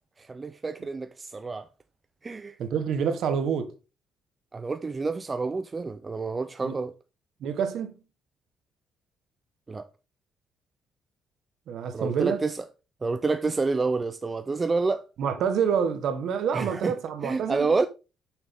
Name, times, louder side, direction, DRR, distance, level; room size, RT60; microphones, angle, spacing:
voice 1, 0.3-1.7 2.2-2.5 4.5-6.9 9.7-9.9 11.9-12.6 13.0-15.0 16.5-16.9 17.2-17.9, right 4 dB, 20° right, 0.4 m, -28 dB
voice 2, 2.6-3.7 6.6-6.8 7.4-7.9 11.7-12.4 15.2-17.8, right 7 dB, 55° right, 1.2 m, -27 dB
7.1 x 6.4 x 3.5 m
cardioid pair, 175°, 0 cm